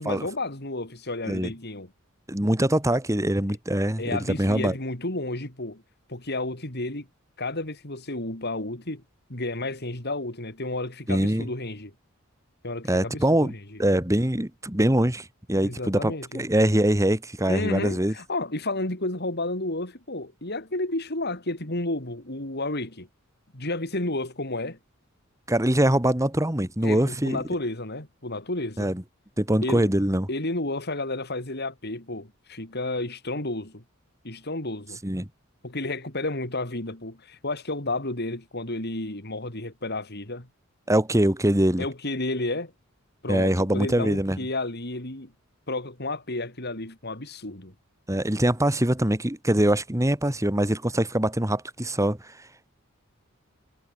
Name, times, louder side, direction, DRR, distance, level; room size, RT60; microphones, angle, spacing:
voice 1, 0.0-1.9 4.0-5.8 6.1-7.1 7.4-9.0 9.3-11.9 12.6-13.8 15.6-16.4 17.5-23.1 23.5-24.8 26.8-28.9 29.6-29.9 30.3-33.8 34.2-35.0 35.6-40.5 41.8-42.7 43.2-45.3 45.7-47.7, left 2 dB, 50° left, 4.5 m, -31 dB
voice 2, 2.3-4.7 11.1-11.5 12.9-13.5 13.8-18.1 25.5-27.4 28.8-29.0 29.4-30.3 35.0-35.3 40.9-41.9 43.3-44.4 48.1-52.5, right 1 dB, 15° right, 2.2 m, -23 dB
head